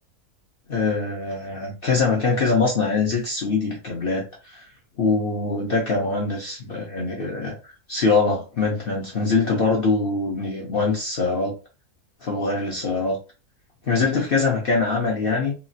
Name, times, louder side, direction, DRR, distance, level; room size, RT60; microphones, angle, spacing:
voice 1, 0.7-4.7 5.0-11.5 12.2-13.2 13.9-15.5, left 4 dB, 60° left, -1 dB, 0.6 m, -23 dB
2.9 x 2.3 x 2.6 m, 0.32 s
omnidirectional pair, 1.6 m